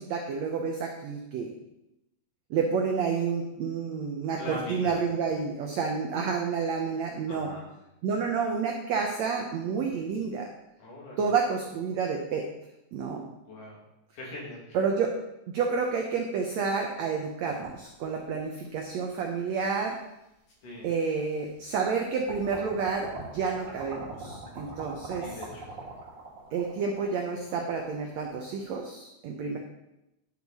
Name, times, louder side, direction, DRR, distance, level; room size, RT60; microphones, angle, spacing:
voice 1, 0.0-1.5 2.5-7.5 8.0-10.5 11.2-12.4 12.9-13.3 14.7-15.1 15.5-20.0 20.8-25.3 26.5-29.6, right 5 dB, 75° right, 2 dB, 1.6 m, -29 dB
voice 2, 4.4-5.0 7.3-7.7 10.8-11.3 13.5-13.8 14.1-14.8 20.6-20.9 25.2-25.7, left 1 dB, 60° left, -4 dB, 3.9 m, -41 dB
sound 1, 17.6-18.8 19.6-19.7 20.8-20.9 21.4-21.9 22.3-28.7, right 2 dB, 35° right, 2.6 m, -43 dB
11.0 x 7.1 x 4.2 m, 0.91 s
omnidirectional pair, 4.2 m